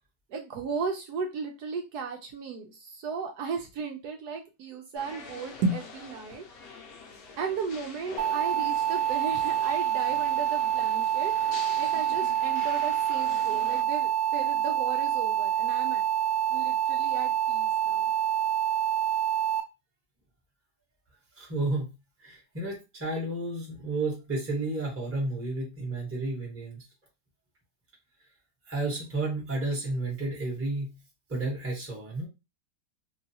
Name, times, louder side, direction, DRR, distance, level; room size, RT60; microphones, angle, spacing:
voice 1, 0.3-6.4 7.4-11.3 11.7-16.0 16.5-18.1, right 4 dB, 75° right, 3 dB, 1.1 m, -35 dB
sound 1, 5.0-13.8, left 4 dB, 65° left, 1.1 m, -46 dB
sound 2, 8.2-19.6, right 10 dB, 90° right, 1.2 m, -27 dB
voice 2, 21.4-21.9 22.2-26.8 28.7-30.9 31.3-32.3, right 2 dB, 10° right, -3 dB, 0.9 m, -31 dB
3.1 x 2.3 x 2.7 m, 0.26 s
omnidirectional pair, 1.8 m